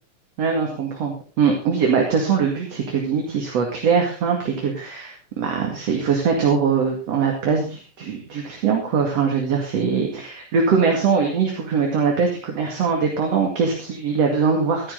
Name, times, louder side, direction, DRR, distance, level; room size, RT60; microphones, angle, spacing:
voice 1, 0.4-14.9, right 5 dB, 55° right, 1 dB, 3.2 m, -22 dB
15.0 x 13.0 x 3.9 m, 0.34 s
omnidirectional pair, 3.5 m